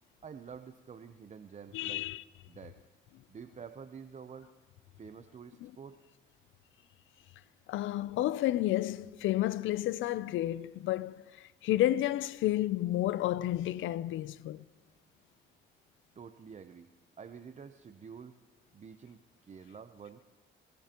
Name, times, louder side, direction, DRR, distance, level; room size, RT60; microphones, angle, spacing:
voice 1, 0.2-2.1 2.5-2.8 3.3-4.5 5.0-6.0 16.2-16.9 17.2-18.3 18.7-20.2, right 6 dB, 35° right, 0.7 m, -48 dB
voice 2, 1.7-2.2 5.6-5.7 7.7-11.2 11.6-14.6, left 14 dB, 80° left, 0.5 m, -31 dB
21.5 x 20.0 x 3.0 m
cardioid pair, 90°, 20 cm